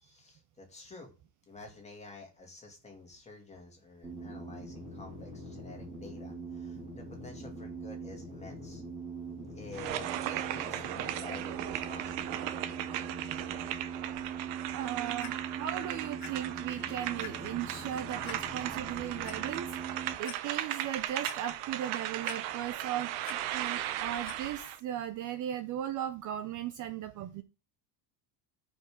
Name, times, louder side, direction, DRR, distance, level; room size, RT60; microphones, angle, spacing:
voice 1, 0.0-1.1 1.5-8.8 9.5-12.4, left 2 dB, 15° left, 1 dB, 2.4 m, -50 dB
sound 1, 4.0-20.2, right 4 dB, 15° right, 3.3 m, -42 dB
sound 2, 9.7-24.8, right 13 dB, 75° right, 1.0 m, -37 dB
voice 2, 14.5-27.4, right 11 dB, 40° right, 11 dB, 0.6 m, -37 dB
Clock, 15.2-15.3 16.2-16.3 16.7-16.8 17.2-17.3 18.2-18.4 19.0-19.3 19.9-20.0 20.2-20.4 20.8-21.4 22.2-22.8 23.0-23.4 24.2-24.4 25.1-25.2, left 8 dB, 35° left, 1.4 m, -44 dB
14.0 x 5.4 x 3.7 m, 0.34 s
cardioid pair, 160°, 47 cm